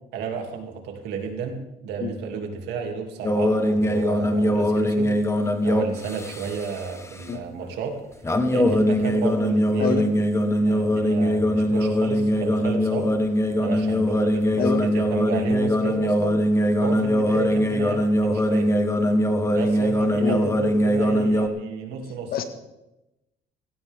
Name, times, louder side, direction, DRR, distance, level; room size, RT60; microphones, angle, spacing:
voice 1, 0.1-5.1 5.6-8.0 8.2-10.2 10.5-13.1 13.6-16.4 16.8-18.7 19.5-22.4, right 5 dB, 85° right, 3 dB, 2.8 m, -32 dB
voice 2, 2.0-2.1 7.3-7.4 9.8-10.0 14.6-14.8 20.2-20.4 22.3-22.4, left 7 dB, 60° left, 8 dB, 1.8 m, -25 dB
sound 1, 3.2-6.8 8.2-21.5, equal, 15° left, 1.3 m, -22 dB
17.0 x 16.5 x 3.6 m, 0.94 s
cardioid pair, 110°, 17 cm